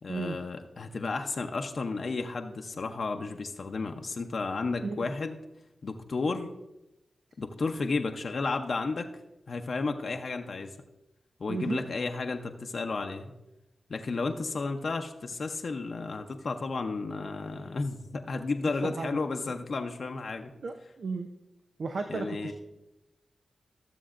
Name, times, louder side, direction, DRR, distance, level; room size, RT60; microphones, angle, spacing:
voice 1, 0.0-5.4 5.8-6.5 7.4-9.1 9.5-10.7 11.4-13.3 13.9-20.5 22.1-22.5, left 3 dB, 65° left, 4 dB, 0.6 m, -32 dB
voice 2, 4.8-5.1 11.5-11.8 18.8-19.1 20.6-21.3 21.8-22.5, right 4 dB, 75° right, 5 dB, 0.5 m, -34 dB
14.5 x 6.9 x 2.5 m, 0.94 s
cardioid pair, 40°, 0 cm